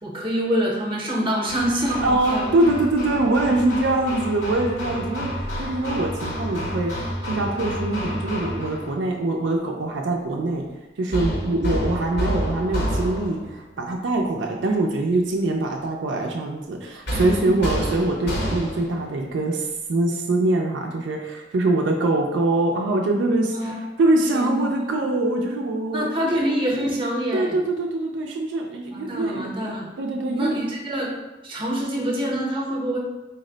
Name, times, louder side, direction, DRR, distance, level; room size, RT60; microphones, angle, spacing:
voice 1, 0.0-2.5 11.4-11.5 17.4-17.6 23.5-23.8 24.3-24.7 25.9-27.5 28.9-29.9 30.3-31.1 31.4-33.0, equal, 30° right, -2 dB, 0.8 m, -25 dB
Hammer, 1.5-8.9 11.1-13.5 17.1-19.0, equal, 60° left, 0.9 m, -29 dB
voice 2, 2.0-5.3 5.6-10.7 11.0-26.4 27.3-29.5 30.0-30.5, right 2 dB, 70° right, 1 dB, 0.4 m, -23 dB
4.0 x 2.1 x 3.8 m, 1.1 s
head